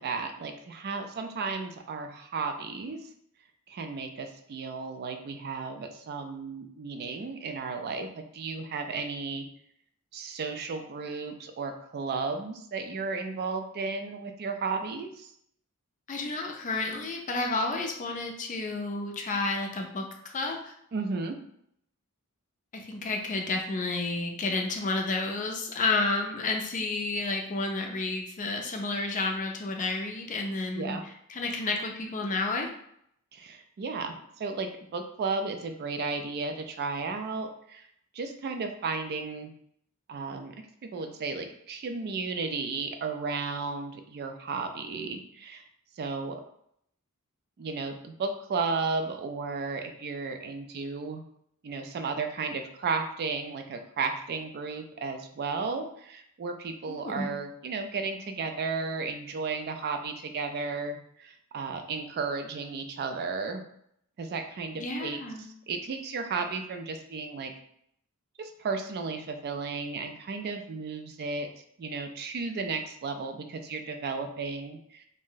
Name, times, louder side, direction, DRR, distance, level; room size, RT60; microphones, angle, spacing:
voice 1, 0.0-3.0 3.7-9.5 10.1-15.3 20.9-21.3 30.7-31.0 33.3-37.9 38.1-39.5 40.1-40.5 40.9-45.6 46.0-46.4 47.6-51.2 51.6-63.6 64.2-67.5 68.4-71.5 71.8-75.1, right 4 dB, 45° right, 6 dB, 0.3 m, -34 dB
voice 2, 16.1-20.7 22.7-31.0 31.3-32.7 56.9-57.3 64.8-65.4, left 3 dB, 35° left, 3 dB, 0.4 m, -31 dB
2.6 x 2.0 x 3.8 m, 0.70 s
head